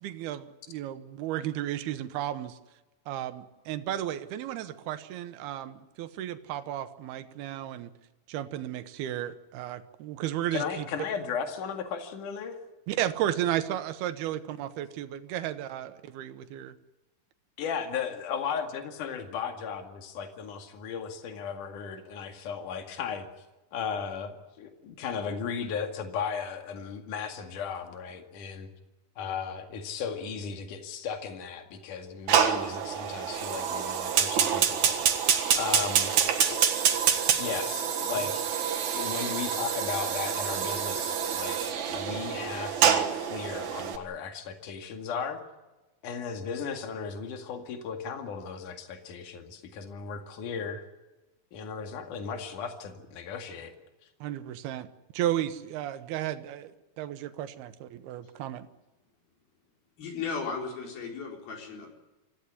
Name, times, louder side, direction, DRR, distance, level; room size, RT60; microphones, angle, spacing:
voice 1, 0.0-2.6 3.1-7.9 8.3-10.9 12.9-16.7 38.2-38.4 54.2-54.9 55.1-58.7, right 12 dB, 90° right, 10 dB, 3.0 m, -33 dB
voice 2, 10.5-12.6 17.6-23.3 23.7-28.7 29.2-35.2 35.5-36.1 36.5-36.7 37.0-38.5 38.9-45.4 46.0-50.9 51.5-53.7, left 6 dB, 60° left, 5 dB, 3.5 m, -36 dB
Fire, 32.3-44.0, right 8 dB, 55° right, 2.8 m, -27 dB
voice 3, 60.0-61.9, left 5 dB, 75° left, 1 dB, 5.9 m, -35 dB
26.0 x 15.5 x 9.8 m, 1.1 s
omnidirectional pair, 4.4 m